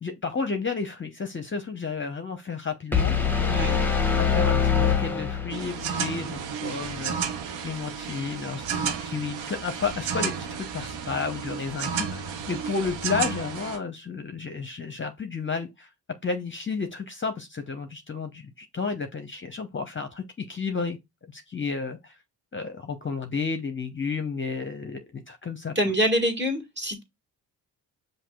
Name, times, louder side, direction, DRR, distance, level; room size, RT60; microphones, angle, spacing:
voice 1, 0.0-3.2 4.2-7.2 7.6-15.9 16.2-21.0 21.3-22.1 22.5-25.9, left 5 dB, 25° left, 0.7 m, -32 dB
sound 1, 2.9-5.9, left 6 dB, 5° left, 1.1 m, -23 dB
voice 2, 3.5-3.8 25.8-27.0, equal, 25° right, 1.8 m, -25 dB
sound 2, 5.5-13.8, right 6 dB, 85° right, 0.8 m, -32 dB
5.8 x 2.7 x 2.3 m
supercardioid pair, 50°, 44 cm